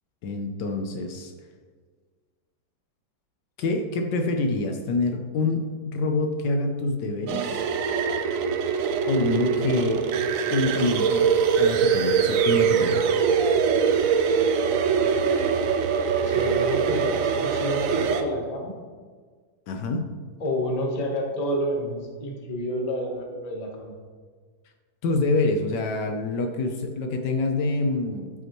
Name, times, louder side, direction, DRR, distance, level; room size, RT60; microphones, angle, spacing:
voice 1, 0.2-1.3 3.6-7.7 9.1-10.1 10.5-13.0 19.7-20.0 25.0-28.3, left 2 dB, 70° left, 5 dB, 1.3 m, -26 dB
sound 1, 7.3-18.2, right 6 dB, 65° right, 0.8 m, -23 dB
voice 2, 16.2-18.7 20.4-23.9, equal, 25° left, 0 dB, 1.1 m, -29 dB
13.0 x 6.0 x 3.1 m, 1.6 s
omnidirectional pair, 2.0 m